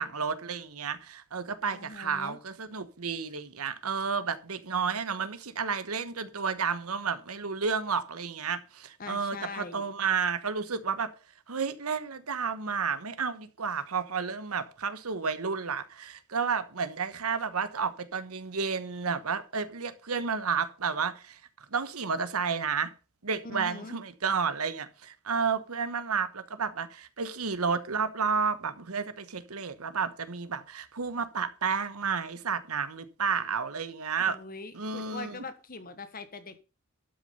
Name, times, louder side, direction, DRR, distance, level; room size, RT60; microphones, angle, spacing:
voice 1, 0.0-11.1 11.5-21.4 21.7-22.9 23.2-34.4 34.7-35.4, right 5 dB, 90° right, 1.2 m, -31 dB
voice 2, 1.7-2.4 9.0-9.8 23.4-24.0 34.3-36.6, left 3 dB, 40° left, 1.4 m, -42 dB
12.5 x 6.3 x 5.4 m
head